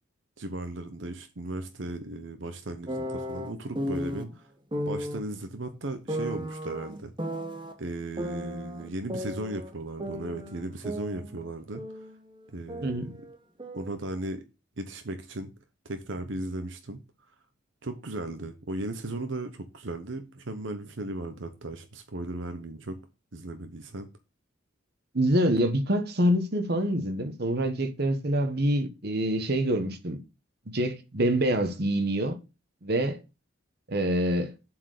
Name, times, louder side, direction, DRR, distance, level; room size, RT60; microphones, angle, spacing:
voice 1, 0.4-4.5 4.9-7.1 7.8-12.0 12.5-13.1 13.7-14.4 14.8-15.5 15.8-17.0 17.8-23.0 23.3-24.1, right 2 dB, 70° right, 1.0 m, -36 dB
sound 1, 2.9-4.2 4.7-5.2 6.1-7.7 8.2-9.7 10.0-12.2 12.4-14.0, equal, 25° right, 1.0 m, -35 dB
voice 2, 25.1-30.2 30.7-32.3 32.8-33.2 33.9-34.5, right 1 dB, 50° right, 1.2 m, -26 dB
7.4 x 4.7 x 6.6 m
head